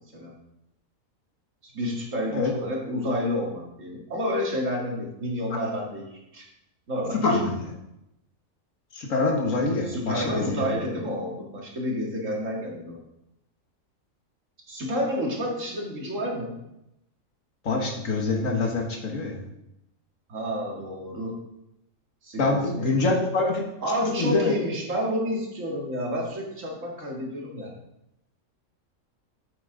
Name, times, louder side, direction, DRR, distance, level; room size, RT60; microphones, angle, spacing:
voice 1, 1.6-6.4 6.9-7.4 9.8-13.0 14.7-16.6 20.3-21.4 22.2-23.1 23.8-27.7, equal, 70° right, -2 dB, 2.4 m, -30 dB
voice 2, 7.2-7.7 8.9-10.8 17.7-19.4 22.4-23.6 24.1-24.5, left 3 dB, 75° left, 1 dB, 1.9 m, -25 dB
8.5 x 8.0 x 3.9 m, 0.85 s
omnidirectional pair, 1.4 m